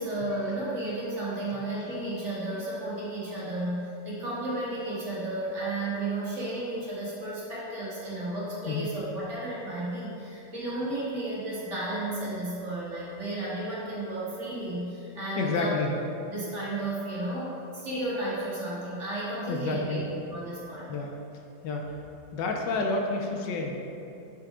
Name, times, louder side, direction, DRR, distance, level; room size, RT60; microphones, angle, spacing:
voice 1, 0.0-15.8 16.3-20.0 20.3-21.1, right 1 dB, 40° right, -7 dB, 1.7 m, -33 dB
voice 2, 15.4-15.9 19.5-20.0 20.9-21.2 21.6-21.9 22.3-23.8, left 3 dB, 75° left, 2 dB, 1.3 m, -29 dB
6.1 x 4.6 x 4.8 m, 2.8 s
omnidirectional pair, 2.0 m